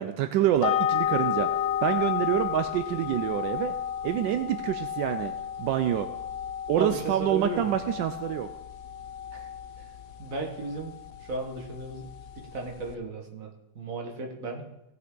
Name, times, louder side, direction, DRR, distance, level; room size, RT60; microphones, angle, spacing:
voice 1, 0.0-1.5 1.8-3.7 4.0-5.3 5.6-6.1 6.7-8.5, right 11 dB, 85° right, 9 dB, 1.3 m, -27 dB
sound 1, 0.6-12.9, left 10 dB, 70° left, 0.9 m, -32 dB
voice 2, 6.8-7.7 9.3-9.5 10.2-10.9 11.3-12.1 12.4-14.6, right 3 dB, 50° right, 1 dB, 1.8 m, -35 dB
17.5 x 5.9 x 3.8 m, 0.85 s
omnidirectional pair, 1.9 m